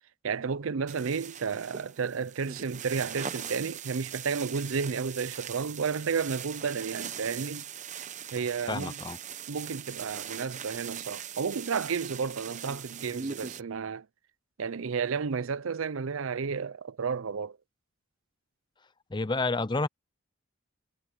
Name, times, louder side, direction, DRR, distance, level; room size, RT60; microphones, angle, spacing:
voice 1, 0.2-7.6 8.3-9.0 9.5-14.1 14.6-17.6, right 5 dB, 70° right, 0.5 m, -32 dB
sound 1, 0.9-13.6, right 8 dB, 35° right, 0.8 m, -40 dB
voice 2, 8.7-9.2 19.1-19.9, left 3 dB, 20° left, 0.5 m, -29 dB
head